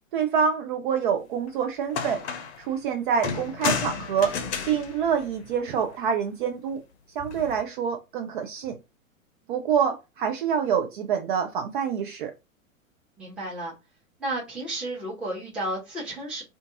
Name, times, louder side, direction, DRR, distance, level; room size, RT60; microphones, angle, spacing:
voice 1, 0.1-2.2 2.6-4.4 4.7-6.8 7.2-8.8 9.5-12.3, right 7 dB, 40° right, 0.4 m, -26 dB
sound 1, 1.5-1.6 1.9-2.7 3.2-5.9 7.2-7.6, left 6 dB, 55° left, 0.6 m, -32 dB
voice 2, 13.2-13.7 14.2-16.4, right 1 dB, ahead, 0.8 m, -32 dB
2.5 x 2.4 x 2.5 m
figure-of-eight pair, 100°, 41 cm